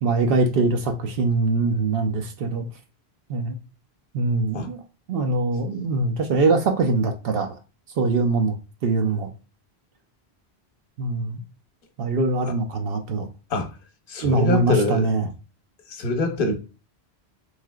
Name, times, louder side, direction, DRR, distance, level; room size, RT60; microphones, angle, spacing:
voice 1, 0.0-2.7 3.3-3.6 4.1-4.8 5.1-7.6 8.0-8.5 8.8-9.3 11.0-11.4 12.0-13.3 14.2-15.3, right 3 dB, 65° right, 0.7 m, -22 dB
voice 2, 14.1-15.0 15.9-16.5, left 2 dB, 60° left, 0.9 m, -24 dB
3.2 x 2.8 x 2.2 m
omnidirectional pair, 1.1 m